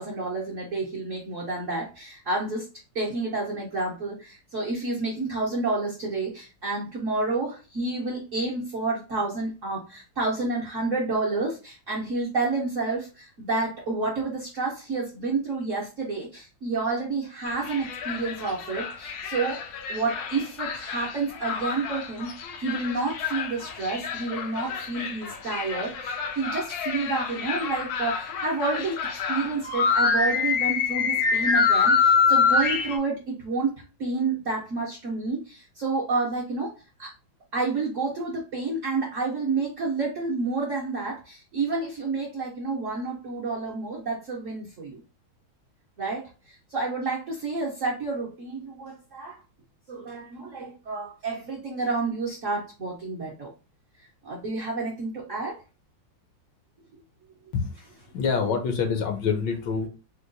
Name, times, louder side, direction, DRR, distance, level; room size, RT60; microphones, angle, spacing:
voice 1, 0.0-2.7 2.9-19.6 19.9-33.7 34.0-36.7 37.0-37.1 37.5-45.0 46.0-49.4 49.9-53.5 54.0-55.6, right 3 dB, 65° right, -4 dB, 0.8 m, -29 dB
sound 1, 17.5-33.0, left 5 dB, 85° left, 1.4 m, -26 dB
voice 2, 57.5-59.9, left 5 dB, 70° left, 5 dB, 1.2 m, -27 dB
4.4 x 2.2 x 2.5 m, 0.31 s
omnidirectional pair, 2.1 m